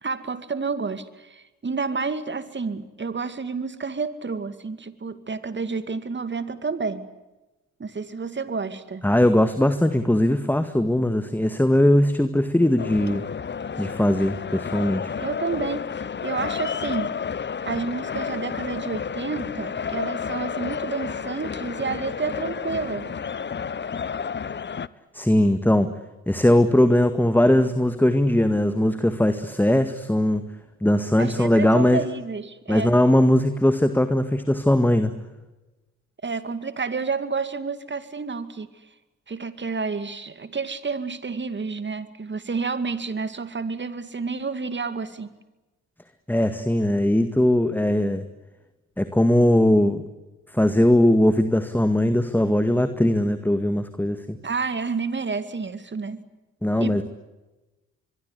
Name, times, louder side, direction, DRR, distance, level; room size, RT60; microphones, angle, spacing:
voice 1, 0.0-7.1 7.8-9.1 15.2-15.9 16.2-17.2 17.6-23.1 31.2-33.0 36.2-38.7 39.3-45.3 54.4-56.2 56.8-57.0, right 4 dB, 35° right, 12 dB, 2.5 m, -30 dB
voice 2, 9.0-13.2 13.8-15.1 25.1-25.9 26.3-30.4 30.8-32.0 32.7-35.1 46.3-48.2 49.0-50.0 50.5-54.4 56.6-57.0, left 1 dB, 5° left, 10 dB, 1.9 m, -20 dB
sound 1, 12.8-24.9, left 6 dB, 30° left, 1.0 m, -31 dB
25.0 x 23.0 x 8.4 m, 1.1 s
hypercardioid pair, 45°, 34 cm